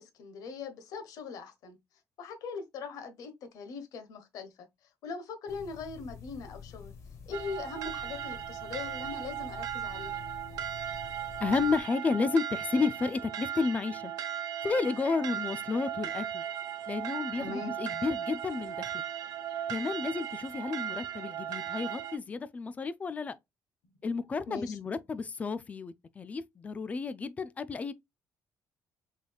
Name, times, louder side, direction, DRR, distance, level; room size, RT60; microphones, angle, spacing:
voice 1, 0.0-1.8 2.2-4.7 5.0-6.9 7.3-10.2 17.3-17.8 24.5-24.8, left 4 dB, 70° left, 1.0 m, -41 dB
sound 1, 5.5-11.8, left 7 dB, 45° left, 1.1 m, -48 dB
sound 2, 7.3-22.2, right 10 dB, 80° right, 0.6 m, -37 dB
voice 2, 11.4-14.1 14.6-16.4 16.9-18.9 19.7-23.4 24.0-27.9, left 4 dB, 25° left, 0.3 m, -31 dB
3.9 x 3.4 x 2.3 m
cardioid pair, 150°, 6 cm